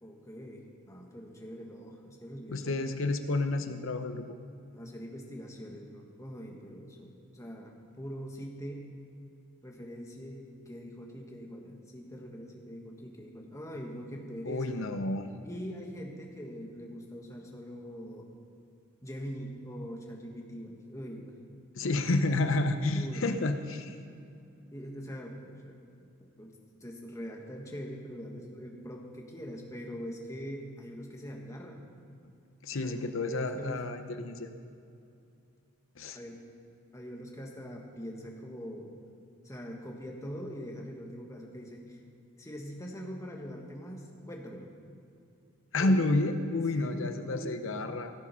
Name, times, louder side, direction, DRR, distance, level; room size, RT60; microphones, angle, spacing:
voice 1, 0.0-2.9 4.7-8.9 9.6-14.8 15.4-18.3 19.0-21.4 22.8-23.3 24.7-25.8 26.4-31.8 32.8-33.0 33.2-33.8 36.1-36.5 36.9-38.9 39.4-42.0 42.4-44.7 45.8-46.0 46.5-47.6, equal, 15° left, 0 dB, 1.4 m, -43 dB
voice 2, 2.5-4.3 14.4-15.3 21.7-24.0 32.6-34.5 36.0-36.2 45.7-48.1, left 2 dB, 65° left, 8 dB, 0.7 m, -30 dB
17.0 x 7.4 x 5.7 m, 2.6 s
head